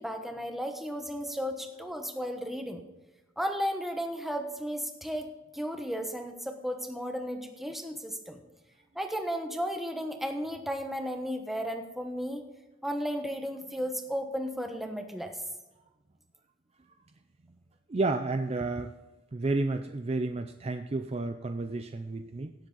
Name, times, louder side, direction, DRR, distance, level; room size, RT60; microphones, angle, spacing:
voice 1, 0.0-2.8 3.4-8.4 8.9-12.5 12.8-15.4, equal, ahead, 4 dB, 1.1 m, -34 dB
voice 2, 17.9-19.0 19.3-22.5, right 2 dB, 30° right, 7 dB, 0.4 m, -31 dB
17.0 x 7.4 x 3.9 m, 1.1 s
head